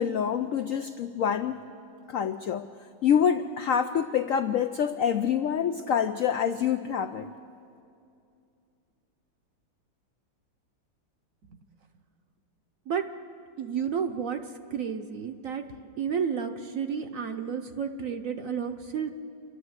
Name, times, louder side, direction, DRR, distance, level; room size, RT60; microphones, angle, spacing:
voice 1, 0.0-1.5 2.1-2.7 3.0-7.3, left 8 dB, 75° left, 8 dB, 0.7 m, -26 dB
voice 2, 13.6-14.4 14.7-15.6 16.0-19.1, right 7 dB, 55° right, 6 dB, 1.0 m, -31 dB
29.0 x 11.5 x 7.9 m, 2.6 s
omnidirectional pair, 2.0 m